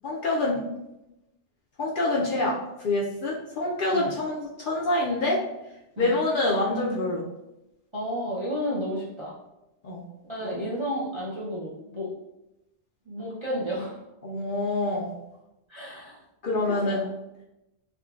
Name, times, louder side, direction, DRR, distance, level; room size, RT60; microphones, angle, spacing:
voice 1, 0.0-0.6 1.8-5.4 6.0-7.3 9.8-10.0 10.4-10.6 14.2-15.1 16.4-17.0, left 2 dB, 60° left, -4 dB, 0.6 m, -26 dB
voice 2, 7.9-9.4 10.3-12.1 13.1-14.0 15.7-16.2 16.7-17.1, equal, 35° right, -7 dB, 0.5 m, -32 dB
3.7 x 2.2 x 2.3 m, 0.91 s
omnidirectional pair, 1.2 m